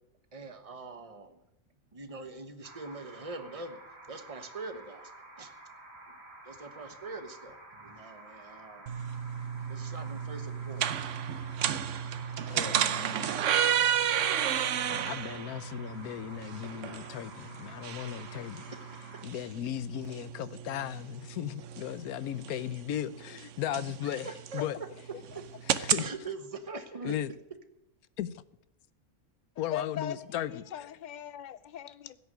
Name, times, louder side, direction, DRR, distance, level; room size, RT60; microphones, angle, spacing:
voice 1, 0.3-1.4 1.9-3.8 4.1-5.1 5.4-5.5 6.4-8.9 9.7-10.9 24.5-24.6 26.0-27.1, right 3 dB, 25° right, 1.3 m, -43 dB
sound 1, 2.6-19.2, right 2 dB, 45° right, 2.7 m, -51 dB
sound 2, 8.9-26.1, right 9 dB, 60° right, 1.0 m, -33 dB
voice 2, 12.5-13.4 14.9-18.7 19.2-24.8 25.6-26.0 27.0-27.3 28.2-28.3 29.6-30.9, left 11 dB, 80° left, 1.2 m, -36 dB
voice 3, 29.7-32.2, left 9 dB, 60° left, 0.5 m, -39 dB
16.5 x 7.0 x 9.3 m
omnidirectional pair, 1.5 m